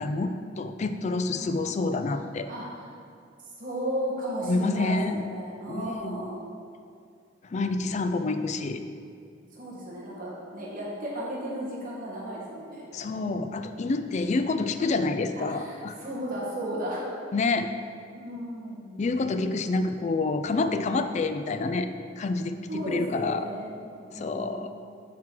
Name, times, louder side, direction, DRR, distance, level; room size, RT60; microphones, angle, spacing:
voice 1, 0.0-2.5 4.4-5.2 5.7-6.2 7.4-8.8 12.9-16.0 17.3-17.7 19.0-21.9 22.2-23.5 24.1-24.7, left 3 dB, 35° left, 9 dB, 0.4 m, -28 dB
voice 2, 3.6-6.4 9.5-12.8 15.4-17.0 18.1-19.0 22.7-24.7, right 1 dB, 45° right, -5 dB, 1.4 m, -34 dB
10.5 x 4.6 x 3.8 m, 2.3 s
head